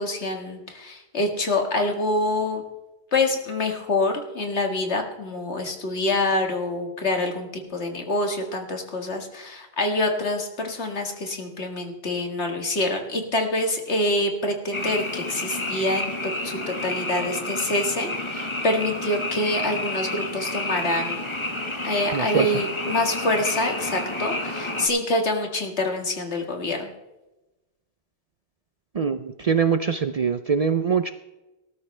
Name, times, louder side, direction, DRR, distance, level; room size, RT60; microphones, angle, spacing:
voice 1, 0.0-2.6 3.1-21.2 21.8-26.9, left 2 dB, 85° left, 3 dB, 2.2 m, -26 dB
Frog, 14.7-24.9, left 1 dB, 25° left, 1.7 m, -30 dB
voice 2, 22.1-22.5 28.9-31.1, right 6 dB, 45° right, 9 dB, 0.5 m, -23 dB
19.0 x 12.5 x 3.3 m, 1.0 s
omnidirectional pair, 1.1 m